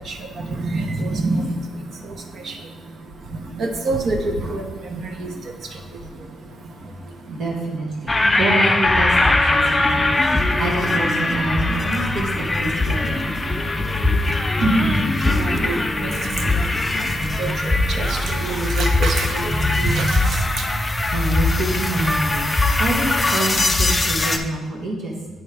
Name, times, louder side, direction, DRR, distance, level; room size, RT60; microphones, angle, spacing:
voice 1, 0.6-1.5 2.5-2.6 3.6-4.6 4.9-5.3 14.7-14.9 15.3-15.7 16.0-16.5 17.4-17.5 17.9-19.4 19.8-20.2, right 3 dB, 55° right, 4 dB, 0.9 m, -25 dB
voice 2, 7.3-13.3 14.6-14.8 17.3-17.4 20.9-25.1, right 2 dB, 75° right, -2 dB, 1.2 m, -26 dB
sound 1, 8.1-24.4, left 2 dB, 15° left, 0.5 m, -21 dB
8.7 x 4.5 x 3.4 m, 1.2 s
cardioid pair, 90°, 0 cm